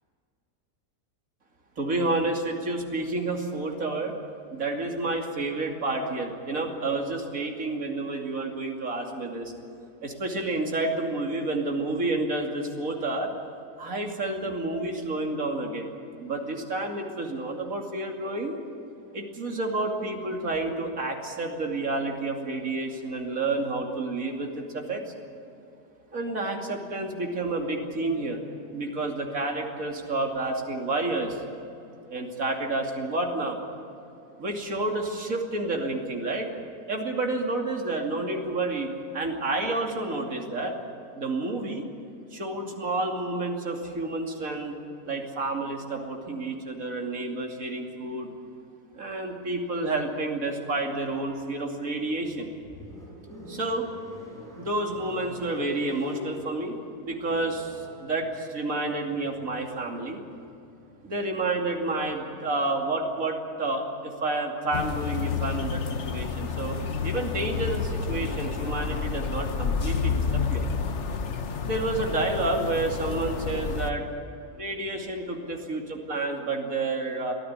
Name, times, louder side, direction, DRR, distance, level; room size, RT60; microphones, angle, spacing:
voice 1, 1.8-4.1 4.5-9.5 10.0-13.3 13.8-15.9 16.2-18.6 19.1-25.0 26.1-28.4 28.7-31.4 32.1-33.6 34.4-36.5 36.9-38.9 39.1-40.7 41.1-41.9 42.3-44.8 45.0-48.3 48.9-52.5 53.5-53.9 54.6-56.8 57.0-60.2 61.0-70.7 71.6-74.0 74.5-77.3, right 2 dB, 55° right, 1 dB, 3.0 m, -30 dB
sound 1, 51.9-62.1, left 1 dB, ahead, 7.3 m, -46 dB
sound 2, 64.7-73.9, left 5 dB, 50° left, 1.3 m, -30 dB
22.5 x 15.0 x 9.7 m, 2.7 s
omnidirectional pair, 1.7 m